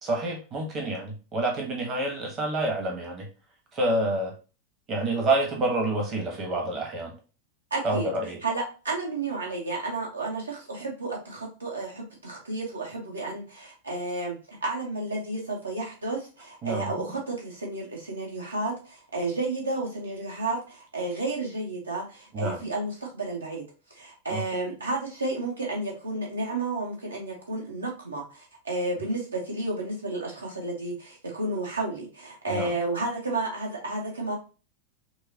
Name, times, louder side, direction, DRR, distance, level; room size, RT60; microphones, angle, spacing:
voice 1, 0.0-3.3 3.7-4.3 4.9-7.1 7.8-8.4 16.6-16.9 22.3-22.6 24.3-24.4 32.5-32.7, right 2 dB, 30° right, 2 dB, 1.0 m, -28 dB
voice 2, 7.7-8.1 8.4-23.6 23.9-34.4, right 2 dB, 75° right, -1 dB, 1.1 m, -32 dB
6.0 x 2.0 x 2.8 m, 0.34 s
figure-of-eight pair, 90°, 0 cm